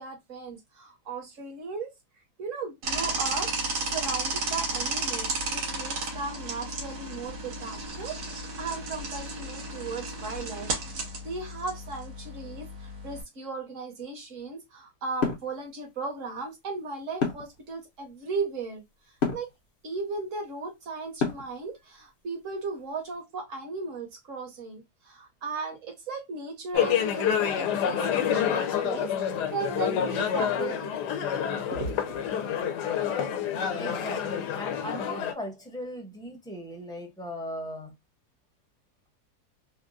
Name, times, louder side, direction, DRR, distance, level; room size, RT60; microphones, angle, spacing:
voice 1, 0.0-1.9 2.4-3.5 3.9-10.7 11.2-18.8 19.3-19.5 19.8-31.0 31.7-32.2, right 4 dB, 55° right, 1.5 m, -36 dB
sound 1, 2.8-13.2, right 2 dB, 75° right, 1.5 m, -33 dB
sound 2, 15.2-15.5 17.2-17.6 19.2-19.5 21.2-21.6, left 5 dB, 45° left, 0.8 m, -27 dB
sound 3, 26.7-35.3, left 8 dB, 90° left, 1.2 m, -28 dB
voice 2, 33.8-37.9, equal, 5° left, 0.7 m, -38 dB
3.6 x 2.3 x 2.5 m
omnidirectional pair, 1.7 m